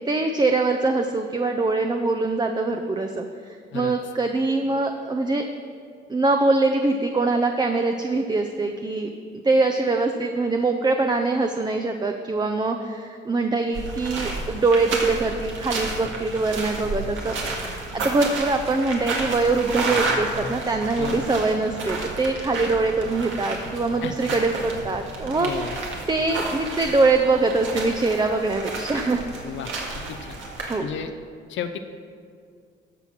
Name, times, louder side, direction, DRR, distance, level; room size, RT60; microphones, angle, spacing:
voice 1, 0.1-5.5 6.1-9.1 9.4-17.3 17.9-25.5 26.1-29.2 30.7-30.9, right 3 dB, 20° right, 4 dB, 0.7 m, -23 dB
sound 1, 13.7-30.7, right 3 dB, 75° right, 1.9 m, -31 dB
voice 2, 25.4-25.8 29.4-29.7 30.1-30.4 30.8-31.1 31.5-31.8, left 8 dB, 70° left, 7 dB, 0.7 m, -32 dB
14.0 x 5.7 x 6.0 m, 2.2 s
cardioid pair, 90°, 20 cm